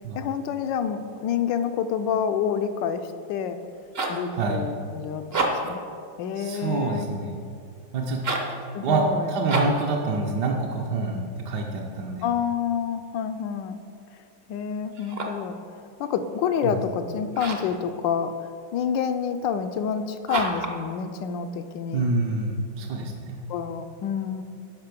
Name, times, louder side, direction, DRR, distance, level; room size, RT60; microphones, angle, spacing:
voice 1, 0.1-3.6 4.1-5.8 6.2-7.1 8.7-9.3 12.2-13.8 14.5-22.0 23.5-24.4, left 7 dB, 75° left, 9 dB, 1.1 m, -28 dB
sound 1, 3.6-4.3 5.2-5.8 8.1-8.6 9.5-9.9 14.9-15.5 17.3-17.8 20.3-20.8, right 2 dB, 45° right, 0.8 m, -28 dB
voice 2, 4.3-4.6 6.4-7.4 7.9-8.2 8.8-12.3 16.6-16.8 21.9-23.4, right 3 dB, 60° right, -1 dB, 1.2 m, -27 dB
10.5 x 5.9 x 6.7 m, 2.4 s
omnidirectional pair, 2.4 m